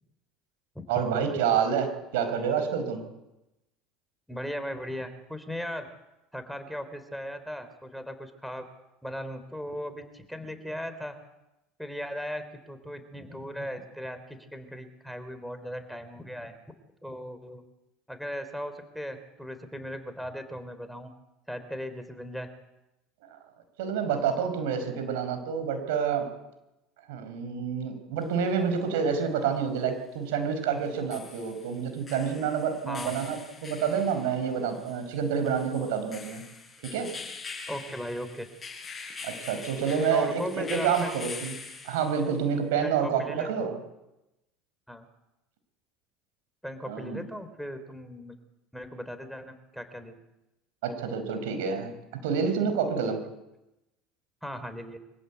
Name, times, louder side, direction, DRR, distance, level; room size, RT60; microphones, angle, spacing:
voice 1, 0.9-3.0 23.3-23.4 23.8-26.3 27.1-36.4 36.9-37.1 39.2-41.5 41.8-43.8 46.9-47.2 50.8-53.2, right 7 dB, 75° right, 8 dB, 5.0 m, -28 dB
voice 2, 4.3-5.9 6.3-8.7 9.0-11.2 11.8-16.5 17.0-17.6 18.1-21.1 21.5-22.5 32.9-33.1 37.7-38.5 40.1-41.2 42.8-43.7 44.9-45.1 46.6-48.4 48.7-50.2 54.4-55.0, equal, ahead, 8 dB, 3.5 m, -37 dB
sound 1, 28.2-28.3 30.8-42.4, left 4 dB, 20° left, 6.6 m, -43 dB
24.5 x 15.0 x 8.3 m, 0.93 s
hypercardioid pair, 80°, 0 cm